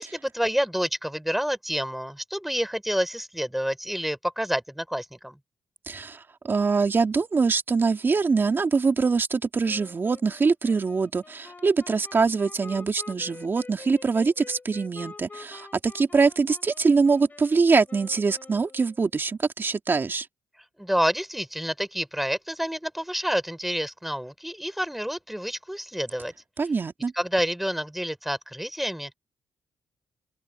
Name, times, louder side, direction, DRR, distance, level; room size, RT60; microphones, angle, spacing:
voice 1, 0.0-5.4 20.8-26.3 27.2-29.1, equal, 5° right, 4.6 m, -28 dB
voice 2, 5.9-20.3 26.6-27.1, right 4 dB, 35° right, 2.5 m, -23 dB
Wind instrument woodwind instrument, 9.7-19.1, left 3 dB, 30° left, 4.7 m, -46 dB
open air
cardioid pair, 80°, 6 cm